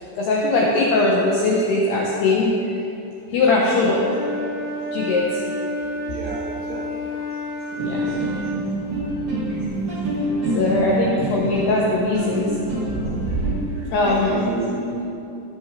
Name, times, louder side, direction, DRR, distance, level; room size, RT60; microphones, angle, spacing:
voice 1, 0.2-2.7 3.3-4.0 4.9-5.4 7.7-8.1 9.5-9.6 10.5-12.6 13.3-13.4 13.8-14.5, left 2 dB, 80° left, -4 dB, 2.3 m, -20 dB
Wind instrument woodwind instrument, 3.9-8.6, equal, 55° left, 1.9 m, -30 dB
voice 2, 6.1-7.3 11.2-11.5 14.0-15.0, right 3 dB, 75° right, 1 dB, 3.3 m, -31 dB
sound 1, 7.8-13.5, right 1 dB, 40° right, 3.2 m, -26 dB
16.0 x 6.5 x 3.6 m, 2.8 s
omnidirectional pair, 5.8 m